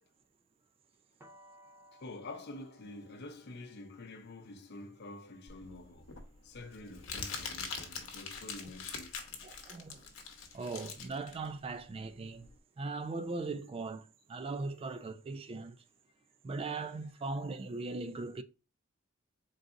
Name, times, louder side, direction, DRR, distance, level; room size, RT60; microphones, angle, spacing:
sound 1, 1.2-7.0, equal, 15° right, 0.9 m, -63 dB
voice 1, 1.9-6.1 6.4-9.2, left 2 dB, 55° left, 0.6 m, -48 dB
Crumpling crinkling, 5.5-12.6, left 5 dB, 90° left, 0.9 m, -43 dB
voice 2, 9.4-10.0 10.5-12.5 12.8-15.8 16.4-18.4, right 3 dB, 30° right, 0.3 m, -39 dB
3.9 x 3.8 x 2.4 m
head